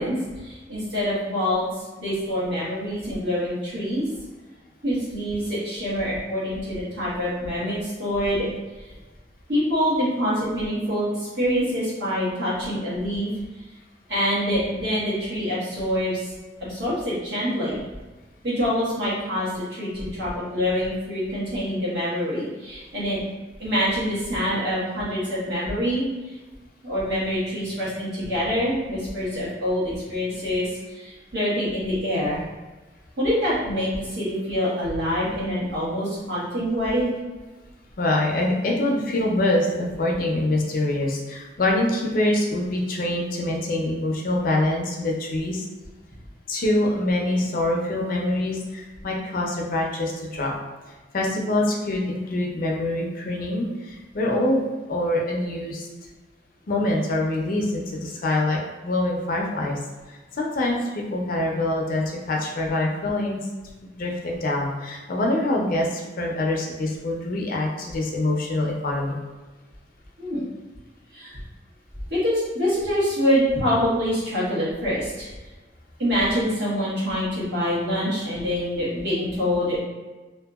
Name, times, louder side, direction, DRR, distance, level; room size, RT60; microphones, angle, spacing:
voice 1, 0.0-1.7 2.0-4.1 4.8-8.5 9.5-13.3 14.1-16.3 16.6-17.8 18.4-23.2 23.6-26.4 26.8-32.4 33.2-37.1 70.2-70.5 71.1-71.4 72.1-75.3 76.0-79.8, equal, 70° right, -8 dB, 1.2 m, -25 dB
voice 2, 38.0-45.7 46.5-50.5 51.1-55.9 56.7-59.8 60.1-63.5 64.0-69.2, left 1 dB, 50° left, -1 dB, 0.4 m, -25 dB
2.7 x 2.5 x 2.3 m, 1.2 s
head